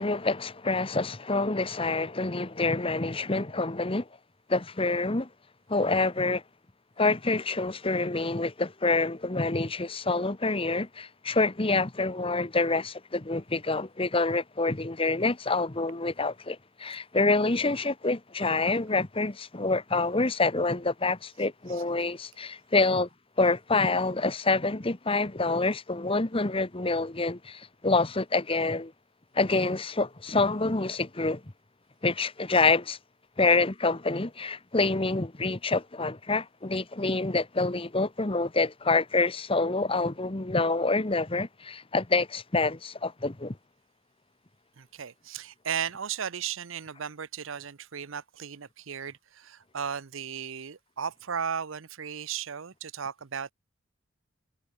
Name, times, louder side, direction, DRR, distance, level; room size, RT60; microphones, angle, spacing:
voice 1, 0.0-4.1 4.5-5.3 5.7-6.4 7.0-23.1 23.4-28.9 29.3-31.4 32.0-33.0 33.4-43.6, left 3 dB, 25° left, 1.1 m, -27 dB
voice 2, 44.8-53.5, right 7 dB, 70° right, 0.7 m, -35 dB
head